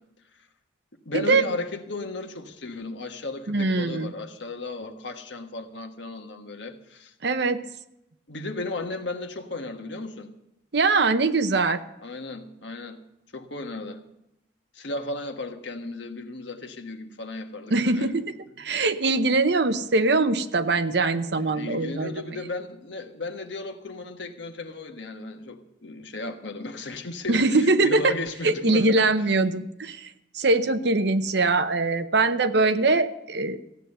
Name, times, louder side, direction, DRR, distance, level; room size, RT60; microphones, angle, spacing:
voice 1, 1.0-7.1 8.3-10.3 12.0-13.0 13.3-14.0 14.7-18.1 21.3-29.3, left 2 dB, 70° left, 5 dB, 1.4 m, -35 dB
voice 2, 3.5-4.1 7.2-7.6 10.7-11.8 17.7-18.2 18.6-22.2 27.3-28.1 28.4-33.6, right 3 dB, 60° right, 11 dB, 0.8 m, -22 dB
15.0 x 9.3 x 6.6 m, 0.85 s
head